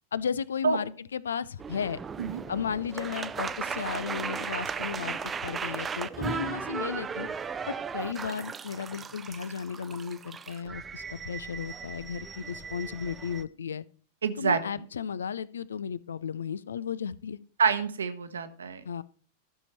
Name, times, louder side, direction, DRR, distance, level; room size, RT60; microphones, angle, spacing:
voice 1, 0.1-2.0 2.5-7.3 7.7-13.8 14.4-17.4 18.8-19.0, left 7 dB, 70° left, 19 dB, 0.5 m, -34 dB
sound 1, 1.6-13.4, right 6 dB, 20° right, 0.6 m, -36 dB
voice 2, 14.2-14.9 17.6-18.8, right 5 dB, 70° right, 10 dB, 1.2 m, -27 dB
13.5 x 6.8 x 4.4 m, 0.43 s
figure-of-eight pair, 90°, 0 cm